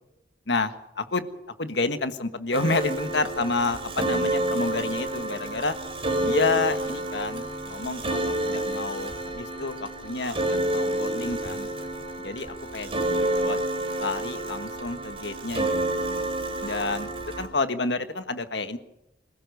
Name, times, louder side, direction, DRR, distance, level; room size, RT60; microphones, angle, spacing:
voice 1, 0.5-1.2 1.6-5.8 6.2-11.7 12.2-12.5 12.7-13.6 14.0-16.0 16.6-17.1 17.4-18.8, left 3 dB, 70° left, 9 dB, 1.6 m, -29 dB
sound 1, 2.5-17.5, right 1 dB, 30° right, 4.3 m, -29 dB
26.0 x 15.5 x 6.7 m, 0.90 s
head